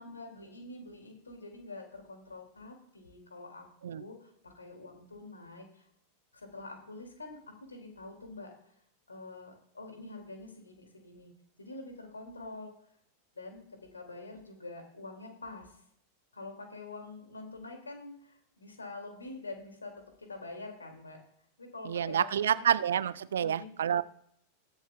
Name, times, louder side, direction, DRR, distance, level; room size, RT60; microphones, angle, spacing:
voice 1, 0.0-5.9 6.3-7.4 7.7-8.5 9.1-11.3 11.6-12.7 13.3-13.6 13.9-15.8 16.3-19.9 20.2-21.2 21.6-22.7 23.4-23.7, left 2 dB, 75° left, 3 dB, 2.4 m, -46 dB
voice 2, 21.8-24.0, right 9 dB, 65° right, 17 dB, 0.4 m, -28 dB
21.5 x 7.1 x 2.3 m, 0.71 s
figure-of-eight pair, 90°, 0 cm